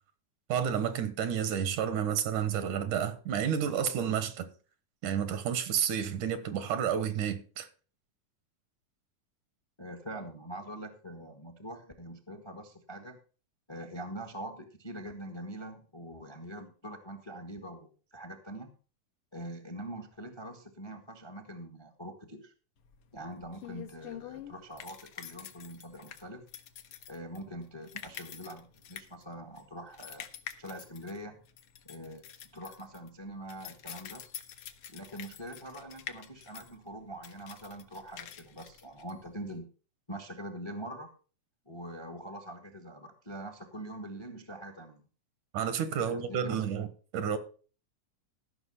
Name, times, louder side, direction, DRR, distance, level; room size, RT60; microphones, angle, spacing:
voice 1, 0.5-4.5 5.0-7.7 45.5-46.9 47.1-47.4, right 8 dB, 80° right, 2.7 m, -30 dB
voice 2, 9.8-13.2 13.7-18.7 19.3-22.5 23.1-26.4 27.1-30.3 30.6-31.4 31.8-34.2 34.9-39.7 40.1-41.1 41.6-45.1 46.0-46.7, right 1 dB, 20° left, 0.6 m, -44 dB
sound 1, 22.8-39.6, left 10 dB, 65° left, 1.5 m, -47 dB
15.0 x 6.0 x 5.7 m
omnidirectional pair, 3.5 m